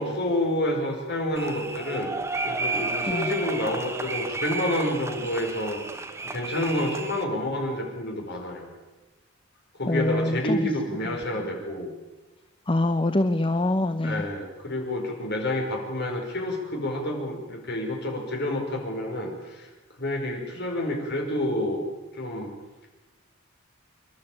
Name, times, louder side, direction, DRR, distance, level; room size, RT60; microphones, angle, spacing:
voice 1, 0.0-2.2 2.4-5.8 6.2-8.7 9.8-11.9 14.0-19.7 20.0-21.9 22.2-22.5, left 1 dB, 55° left, 1 dB, 5.2 m, -29 dB
sound 1, 1.4-7.2, right 3 dB, 15° right, 1.2 m, -32 dB
voice 2, 3.1-3.4 9.9-10.7 11.0-11.2 12.7-14.3, left 1 dB, 25° left, 10 dB, 0.7 m, -25 dB
26.5 x 12.0 x 8.8 m, 1.2 s
head